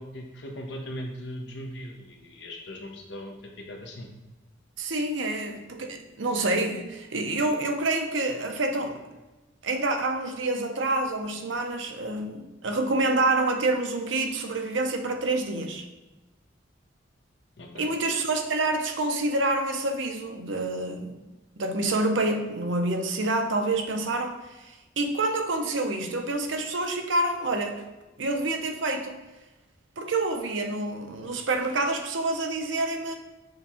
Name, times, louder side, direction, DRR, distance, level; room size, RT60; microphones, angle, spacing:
voice 1, 0.0-4.1 17.6-17.9, equal, 60° left, 1 dB, 1.0 m, -39 dB
voice 2, 4.8-9.0 9.6-15.9 17.8-21.2 21.6-27.8 28.2-29.2 30.0-33.2, right 2 dB, 70° right, 4 dB, 0.7 m, -27 dB
6.7 x 3.5 x 4.3 m, 1.1 s
head